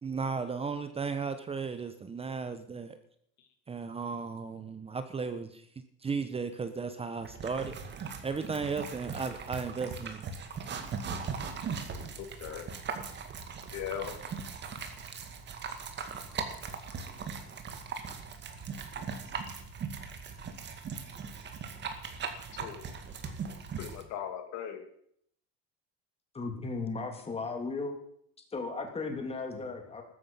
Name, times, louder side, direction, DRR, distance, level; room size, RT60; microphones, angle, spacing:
voice 1, 0.0-3.0 3.7-5.6 6.0-7.8 8.2-10.2, right 5 dB, 20° right, 10 dB, 0.9 m, -35 dB
sound 1, 7.2-24.0, right 5 dB, 35° right, 2.0 m, -39 dB
sound 2, 9.1-9.3 10.2-10.3 11.5-11.8 12.8-13.1 14.3-14.8, right 8 dB, 70° right, 3.5 m, -61 dB
voice 2, 12.2-12.6 13.7-14.2 22.5-22.8 23.8-24.9, left 9 dB, 65° left, 6 dB, 2.5 m, -39 dB
voice 3, 26.3-28.0 28.5-30.0, left 3 dB, 20° left, 4 dB, 2.8 m, -36 dB
14.5 x 13.0 x 5.5 m, 0.68 s
cardioid pair, 145°, 29 cm